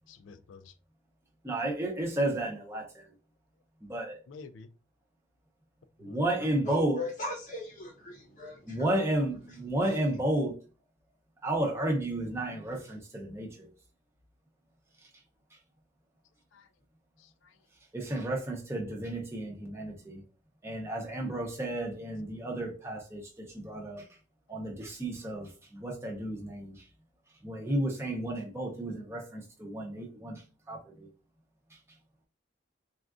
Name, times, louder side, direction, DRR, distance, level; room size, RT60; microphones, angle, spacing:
voice 1, 0.1-0.7 4.3-4.7 6.0-6.7 16.5-16.7 17.2-17.5, left 4 dB, 85° left, 0.3 m, -50 dB
voice 2, 1.4-3.0 3.8-4.2 6.0-7.0 8.7-10.5 11.4-13.7 17.9-20.2 20.6-24.0 24.5-26.8 27.4-30.4 30.7-31.1, right 1 dB, 15° right, 0.6 m, -32 dB
voice 3, 6.7-8.9, left 2 dB, 40° left, 0.7 m, -38 dB
3.6 x 2.4 x 2.4 m
head